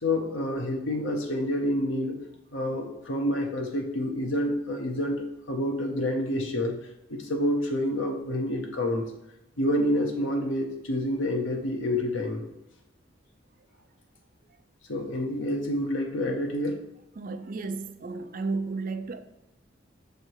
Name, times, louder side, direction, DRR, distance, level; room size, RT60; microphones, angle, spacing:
voice 1, 0.0-2.1 2.5-6.8 7.1-9.0 9.6-12.4 14.9-16.8, left 1 dB, 80° left, 0.9 m, -28 dB
voice 2, 17.2-19.2, right 3 dB, 45° right, 0.4 m, -33 dB
6.4 x 3.4 x 4.6 m
head